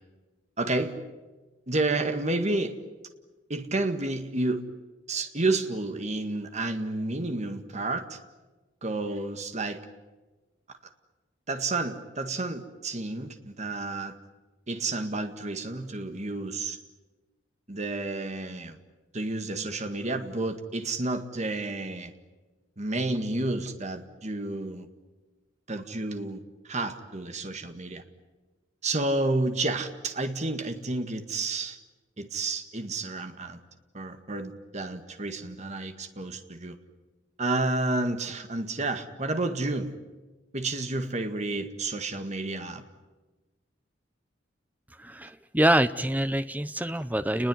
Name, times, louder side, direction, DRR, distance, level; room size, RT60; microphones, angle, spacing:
voice 1, 0.6-1.0 1.7-2.8 3.5-4.6 5.1-8.2 8.8-9.8 11.5-14.1 14.7-16.8 17.7-18.8 19.1-22.1 22.8-24.9 25.7-28.0 28.8-31.8 32.2-33.6 33.9-36.8 37.4-39.9 40.5-42.8, right 2 dB, 35° right, 7 dB, 1.9 m, -30 dB
voice 2, 45.0-47.5, right 1 dB, 10° right, 13 dB, 0.8 m, -25 dB
29.5 x 21.0 x 9.5 m, 1.2 s
head